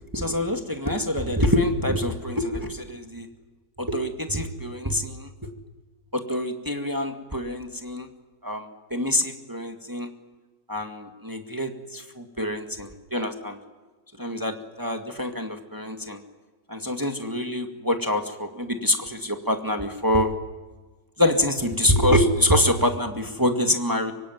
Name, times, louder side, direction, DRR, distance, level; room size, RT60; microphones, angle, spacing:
voice 1, 0.1-3.3 3.8-5.3 6.1-8.1 8.4-10.1 10.7-13.6 14.2-16.2 16.7-20.3 21.2-24.1, left 1 dB, 10° right, 5 dB, 1.9 m, -25 dB
24.5 x 24.0 x 9.4 m, 1.3 s
omnidirectional pair, 1.9 m